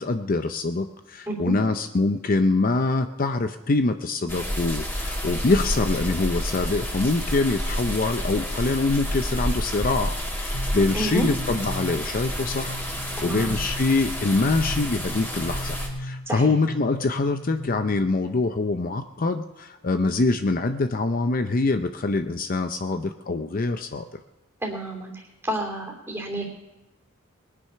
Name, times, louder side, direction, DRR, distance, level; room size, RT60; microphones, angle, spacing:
voice 1, 0.0-12.8 13.2-24.1, left 3 dB, 45° left, 8 dB, 0.6 m, -24 dB
sound 1, 4.3-15.9, equal, 10° left, 2.3 m, -29 dB
sound 2, 10.5-18.1, left 1 dB, 65° left, 1.1 m, -37 dB
voice 2, 10.9-11.3 13.2-13.5 16.3-16.5 24.6-25.1 25.4-26.5, right 1 dB, 10° right, 0 dB, 2.8 m, -29 dB
21.0 x 9.8 x 5.7 m, 1.0 s
head